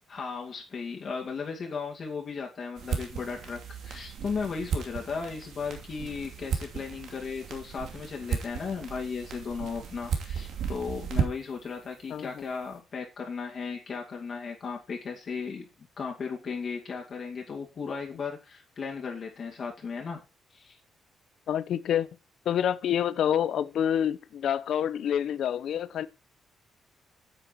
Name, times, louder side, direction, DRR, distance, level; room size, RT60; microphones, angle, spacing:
voice 1, 0.1-15.6 16.0-20.2 20.5-20.8, left 5 dB, 35° left, 2.3 m, -36 dB
sound 1, 2.8-11.6, right 7 dB, 60° right, 2.6 m, -35 dB
voice 2, 21.5-22.1 22.5-26.1, left 9 dB, 60° left, 0.8 m, -27 dB
9.3 x 8.8 x 4.6 m
cardioid pair, 175°, 0 cm